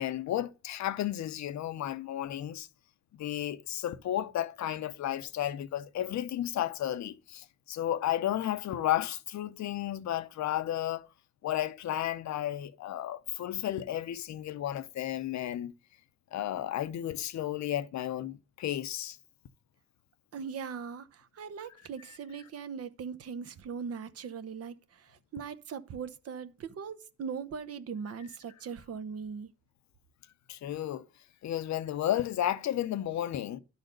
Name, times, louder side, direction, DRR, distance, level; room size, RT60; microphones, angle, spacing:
voice 1, 0.0-2.7 3.1-11.1 11.4-15.7 16.3-19.2 30.5-31.0 31.4-33.6, left 12 dB, 65° left, 0.7 m, -33 dB
voice 2, 20.3-29.5, right 6 dB, 50° right, 0.9 m, -40 dB
11.0 x 4.1 x 6.5 m
cardioid pair, 90°, 30 cm